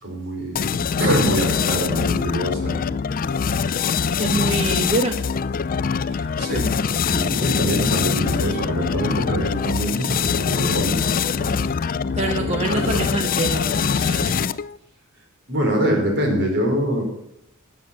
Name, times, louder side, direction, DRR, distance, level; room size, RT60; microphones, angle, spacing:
voice 1, 0.0-3.0 6.1-6.7 7.1-11.7 12.1-13.0 15.5-17.0, equal, 55° right, 2 dB, 4.8 m, -25 dB
sound 1, 0.5-14.8, left 6 dB, 40° left, 0.5 m, -23 dB
voice 2, 4.2-5.2 12.2-14.4, right 2 dB, 30° right, 4 dB, 1.1 m, -25 dB
13.0 x 8.7 x 7.6 m, 0.76 s
head